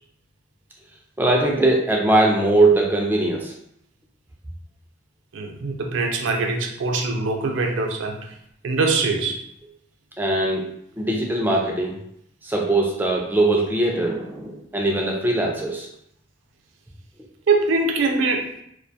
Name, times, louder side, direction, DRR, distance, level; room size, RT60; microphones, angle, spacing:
voice 1, 1.2-3.5 10.2-10.6 11.0-12.0 12.4-15.9, right 2 dB, 10° right, -1 dB, 0.3 m, -20 dB
voice 2, 5.3-8.2 8.6-9.4 17.5-18.5, right 3 dB, 75° right, 3 dB, 0.4 m, -22 dB
2.3 x 2.2 x 2.6 m, 0.72 s
head